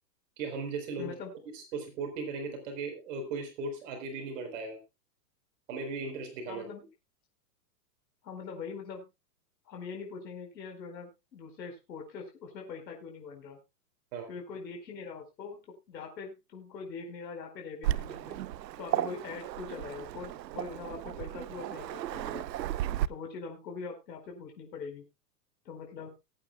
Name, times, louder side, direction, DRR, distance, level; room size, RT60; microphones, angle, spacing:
voice 1, 0.4-1.1 1.5-4.8 5.7-6.7 14.1-14.3, right 4 dB, 50° right, 5 dB, 4.4 m, -37 dB
voice 2, 1.0-1.3 6.5-6.8 8.2-9.1 9.7-13.6 14.3-18.4 18.8-22.4 23.1-25.1 25.6-26.1, left 5 dB, 80° left, 2 dB, 4.8 m, -42 dB
Waves surf, 17.8-23.1, right 13 dB, 85° right, 0.8 m, -34 dB
21.5 x 9.0 x 2.3 m, 0.25 s
hypercardioid pair, 160°, 49 cm